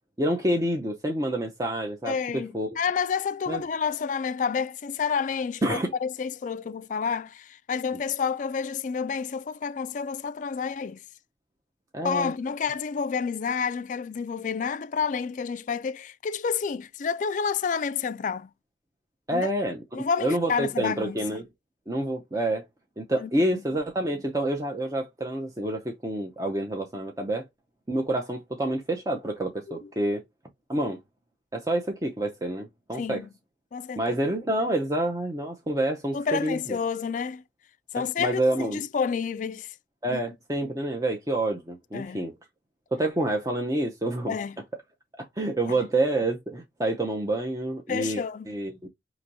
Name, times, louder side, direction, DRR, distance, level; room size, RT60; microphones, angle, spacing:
voice 1, 0.2-2.8 3.5-3.6 5.6-5.9 11.9-12.3 19.3-21.5 21.9-22.6 23.0-27.4 27.9-30.2 30.7-31.0 31.5-33.2 34.0-36.8 38.0-38.8 40.0-42.3 42.9-44.4 45.2-48.9, right 1 dB, 20° right, 0.5 m, -28 dB
voice 2, 2.0-11.0 12.0-18.5 19.3-19.5 19.9-21.2 23.2-23.6 33.0-33.3 33.7-34.0 36.1-37.4 37.9-39.7 40.1-40.2 41.9-42.3 44.3-44.6 47.9-48.5, left 6 dB, 45° left, 0.3 m, -29 dB
4.9 x 3.0 x 2.7 m
head